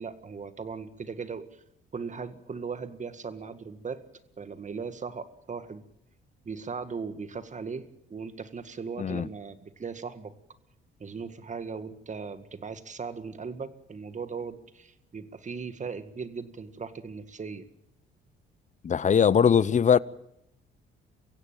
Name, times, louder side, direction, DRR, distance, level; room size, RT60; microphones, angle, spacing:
voice 1, 0.0-1.6 1.9-4.0 4.4-5.8 6.5-10.3 11.0-17.7, right 5 dB, 35° right, 1.9 m, -38 dB
voice 2, 18.8-20.0, left 7 dB, 35° left, 0.8 m, -21 dB
24.0 x 16.0 x 9.1 m
cardioid pair, 85°, 21 cm